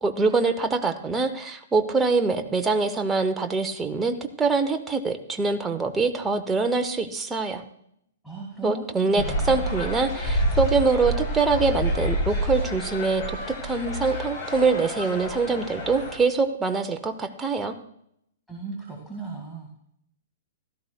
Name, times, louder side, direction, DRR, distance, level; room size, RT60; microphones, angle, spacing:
voice 1, 0.0-7.6 8.6-13.4 13.6-17.7, right 4 dB, 10° right, 5 dB, 0.9 m, -24 dB
voice 2, 8.2-9.7 18.5-19.8, right 4 dB, 5° left, -2 dB, 2.1 m, -36 dB
sound 1, 9.2-16.2, equal, 40° left, 3.5 m, -28 dB
16.0 x 13.0 x 2.4 m, 0.72 s
figure-of-eight pair, 110°, 0 cm